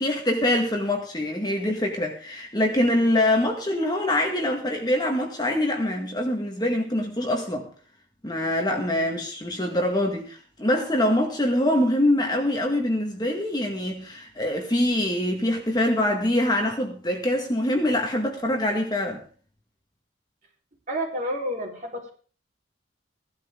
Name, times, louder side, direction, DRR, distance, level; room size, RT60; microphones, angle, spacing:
voice 1, 0.0-7.7 8.2-19.2, left 1 dB, 20° left, 1.8 m, -24 dB
voice 2, 20.9-22.1, equal, 40° right, 4.3 m, -30 dB
16.5 x 12.0 x 3.8 m
head